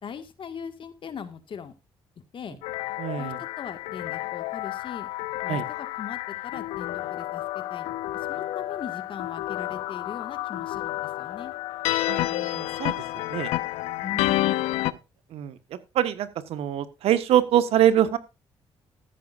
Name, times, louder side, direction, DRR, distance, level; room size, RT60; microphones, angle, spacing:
voice 1, 0.0-1.7 2.3-2.6 3.2-5.1 5.4-7.9 8.1-11.5 14.0-14.6, left 7 dB, 55° left, 9 dB, 1.8 m, -40 dB
sound 1, 2.6-14.9, left 16 dB, 85° left, 0.6 m, -30 dB
voice 2, 3.0-3.4 5.5-5.6 12.1-12.9 13.3-13.5 14.9-15.0 15.3-15.6 15.9-18.2, right 11 dB, 75° right, 11 dB, 1.4 m, -24 dB
14.5 x 11.5 x 2.6 m, 0.26 s
supercardioid pair, 60°, 10 cm